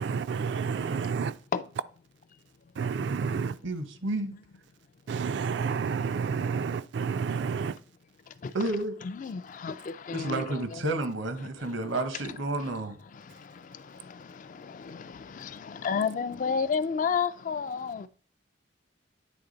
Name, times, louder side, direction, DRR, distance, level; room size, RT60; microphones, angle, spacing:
voice 1, 0.0-1.3 2.8-3.6 5.1-7.8, right 6 dB, 60° right, 0.3 m, -30 dB
voice 2, 3.3-4.3 8.5-9.0 10.1-13.0, right 2 dB, 80° right, 0.9 m, -31 dB
voice 3, 9.0-10.8 11.6-11.7 13.1-18.1, left 6 dB, 40° left, 0.3 m, -32 dB
9.1 x 3.4 x 3.9 m
head